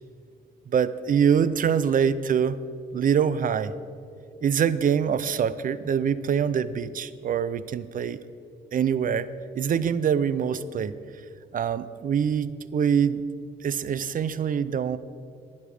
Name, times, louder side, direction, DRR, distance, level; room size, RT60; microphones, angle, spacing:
voice 1, 0.7-2.6 2.9-3.7 4.4-8.2 8.7-9.3 9.5-10.9 11.5-13.2 13.6-15.0, right 7 dB, 45° right, 15 dB, 0.5 m, -24 dB
11.5 x 9.5 x 4.9 m, 2.4 s
cardioid pair, 90°, 20 cm